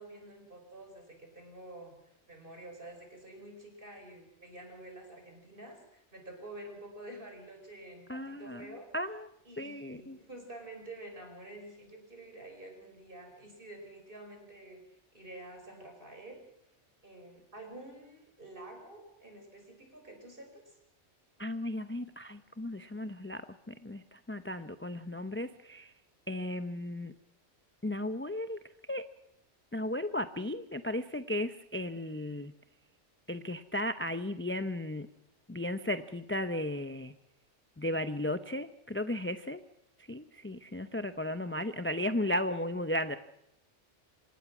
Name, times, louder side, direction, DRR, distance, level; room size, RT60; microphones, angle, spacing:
voice 1, 0.0-1.9 2.3-8.9 9.4-16.4 17.0-20.8, right 1 dB, 45° right, 4 dB, 5.3 m, -49 dB
voice 2, 8.1-8.7 8.9-9.3 9.6-10.2 21.4-23.4 23.7-25.9 26.3-27.1 27.8-28.6 28.9-29.0 29.7-32.5 33.3-35.1 35.5-37.1 37.8-39.6 40.1-43.2, left 1 dB, 15° left, 10 dB, 0.6 m, -35 dB
26.0 x 18.5 x 6.1 m, 0.80 s
omnidirectional pair, 1.2 m